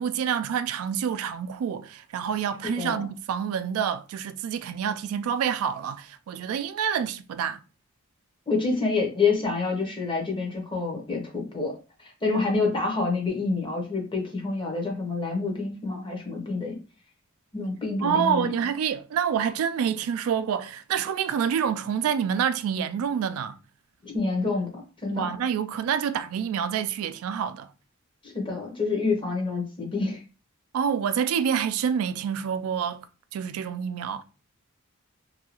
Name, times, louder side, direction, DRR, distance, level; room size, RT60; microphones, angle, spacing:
voice 1, 0.0-7.6 12.3-12.4 18.0-23.6 25.1-27.7 30.7-33.1 33.3-34.2, right 8 dB, 90° right, 0.3 m, -27 dB
voice 2, 2.6-3.1 8.5-11.7 12.2-16.8 17.5-18.5 24.0-25.3 28.2-30.2, left 4 dB, 25° left, 0.8 m, -27 dB
2.7 x 2.3 x 2.8 m
head